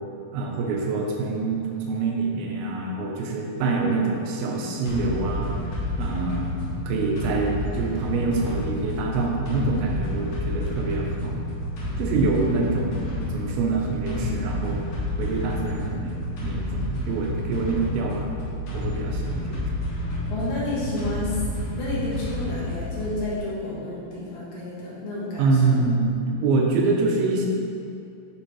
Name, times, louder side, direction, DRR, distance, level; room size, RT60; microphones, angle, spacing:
voice 1, 0.3-5.5 6.0-6.5 6.9-11.4 12.0-14.8 15.2-18.3 18.7-19.7 25.4-27.5, right 3 dB, 85° right, -1 dB, 2.6 m, -25 dB
sound 1, 4.9-23.3, left 1 dB, 55° left, 2.2 m, -30 dB
voice 2, 20.3-21.4 21.8-25.8, left 2 dB, 75° left, -8 dB, 3.2 m, -31 dB
9.0 x 3.4 x 4.6 m, 2.5 s
omnidirectional pair, 4.2 m